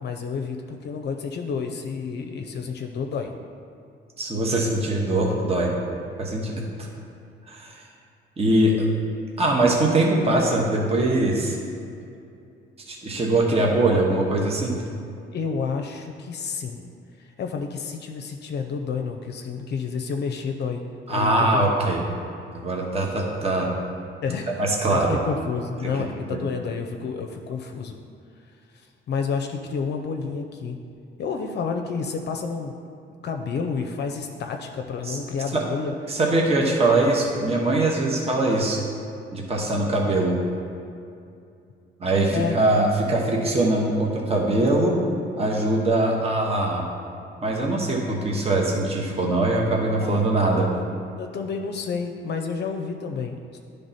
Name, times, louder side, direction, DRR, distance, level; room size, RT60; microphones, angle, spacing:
voice 1, 0.0-3.3 15.3-16.9 17.2-21.9 24.2-28.0 28.7-30.8 31.2-32.7 33.2-35.9 42.3-42.6 50.0-50.8 51.2-53.6, left 5 dB, 60° left, 4 dB, 0.5 m, -30 dB
voice 2, 4.2-5.7 6.2-6.9 7.5-7.8 8.4-8.9 9.4-11.6 12.9-14.8 21.1-22.0 22.5-23.7 24.6-25.2 26.3-26.4 35.0-35.2 35.5-35.6 36.1-38.8 39.3-40.3 42.0-45.0 45.4-46.8 47.4-50.7, right 2 dB, 30° right, -1 dB, 1.0 m, -22 dB
10.0 x 3.4 x 4.1 m, 2.5 s
cardioid pair, 90°, 20 cm